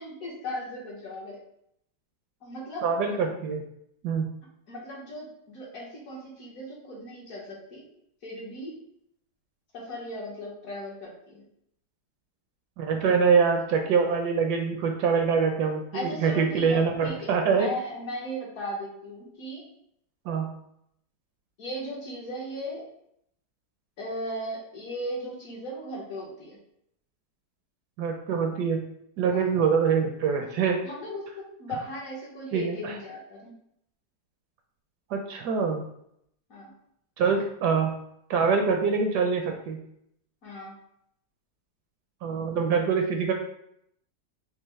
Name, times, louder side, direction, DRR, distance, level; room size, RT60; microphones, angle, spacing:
voice 1, 0.0-1.4 2.4-2.9 4.7-7.8 8.2-8.7 9.7-11.4 15.9-19.6 21.6-22.9 24.0-26.6 29.3-29.5 30.8-31.3 31.6-33.5 36.5-36.7 40.4-40.7, equal, 55° left, -3 dB, 1.2 m, -37 dB
voice 2, 2.8-3.6 4.0-4.3 12.8-17.7 20.3-20.5 28.0-28.8 29.2-30.8 32.5-33.0 35.1-35.8 37.2-37.9 38.3-39.8 42.2-43.3, right 5 dB, 75° right, 4 dB, 1.1 m, -24 dB
5.3 x 2.0 x 3.1 m, 0.74 s
omnidirectional pair, 1.9 m